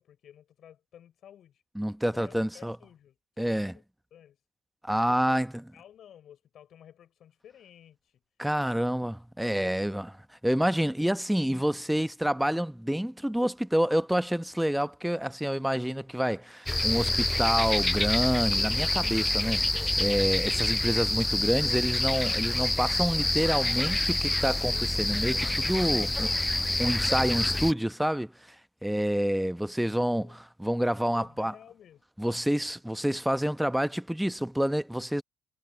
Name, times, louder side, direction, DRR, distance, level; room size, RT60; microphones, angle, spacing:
voice 1, 0.0-1.6 2.1-3.8 4.1-4.4 4.9-5.5 5.7-8.2 8.7-8.8 30.1-30.4 31.0-32.0 33.8-34.0, left 10 dB, 60° left, 6.5 m, -54 dB
voice 2, 1.8-2.8 3.4-3.7 4.8-5.6 8.4-10.1 10.4-28.3 28.8-31.5 32.2-35.2, equal, 5° right, 1.0 m, -28 dB
sound 1, 16.7-27.7, left 1 dB, 10° left, 0.4 m, -27 dB
hypercardioid pair, 55°, 0 cm